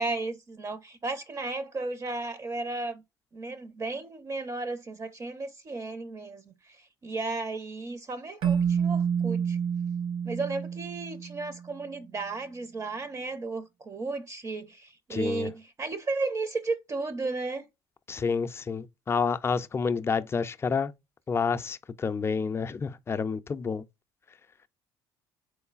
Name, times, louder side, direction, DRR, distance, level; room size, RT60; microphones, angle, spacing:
voice 1, 0.0-3.0 3.3-6.8 7.0-9.6 10.2-17.7, right 3 dB, 30° right, 0.5 m, -34 dB
Keyboard (musical), 8.4-11.7, right 7 dB, 65° right, 0.9 m, -28 dB
voice 2, 15.1-15.5 18.1-20.9 21.3-23.8, left 5 dB, 25° left, 0.3 m, -29 dB
3.8 x 3.1 x 2.3 m
supercardioid pair, 80°, 10 cm